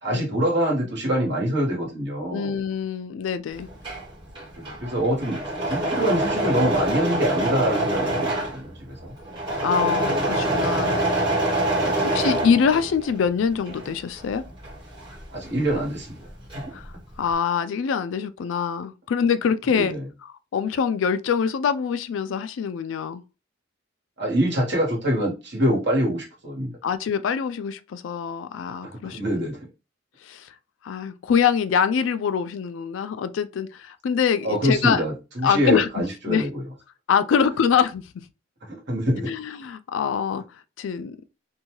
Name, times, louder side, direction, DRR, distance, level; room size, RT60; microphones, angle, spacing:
voice 1, 0.0-2.5 4.6-5.4 5.7-9.1 11.8-12.2 15.3-16.2 16.5-16.6 19.7-20.1 24.2-26.7 28.8-29.6 34.4-36.6 38.9-39.4, equal, 60° right, 1.3 m, -25 dB
voice 2, 2.3-3.7 9.6-11.0 12.0-14.4 16.7-16.9 17.2-19.9 20.2-23.2 26.8-29.5 30.2-30.5 30.8-35.0 35.4-35.9 36.3-36.5 37.1-38.2 39.2-40.4 40.8-41.2, left 7 dB, 85° left, 0.3 m, -24 dB
Engine / Mechanisms, 3.6-13.2 13.5-16.9, right 1 dB, 25° right, 1.1 m, -25 dB
2.7 x 2.3 x 3.0 m
head